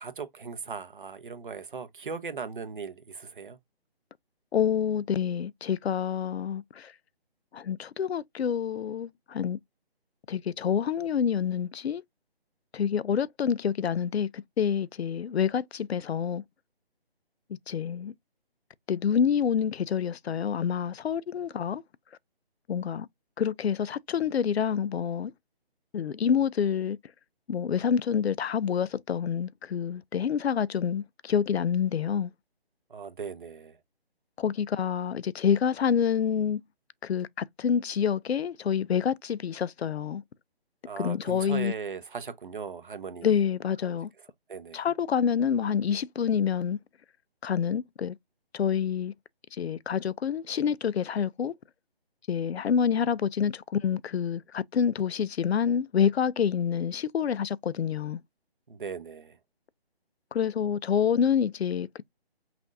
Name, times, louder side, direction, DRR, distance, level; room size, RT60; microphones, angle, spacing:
voice 1, 0.0-3.6 32.9-33.8 40.8-43.4 43.8-44.0 44.5-44.8 58.7-59.4, right 5 dB, 55° right, 0.9 m, -38 dB
voice 2, 4.5-6.9 7.5-9.6 10.3-12.0 12.7-16.4 17.7-18.1 18.9-21.8 22.7-23.1 23.4-25.3 25.9-27.0 27.5-32.3 34.4-36.6 37.0-40.2 41.0-41.7 43.2-44.1 44.7-46.8 47.4-48.2 48.5-49.1 49.5-51.5 52.3-58.2 60.3-62.0, left 7 dB, 80° left, 0.5 m, -27 dB
5.8 x 2.5 x 2.6 m
hypercardioid pair, 170°, 31 cm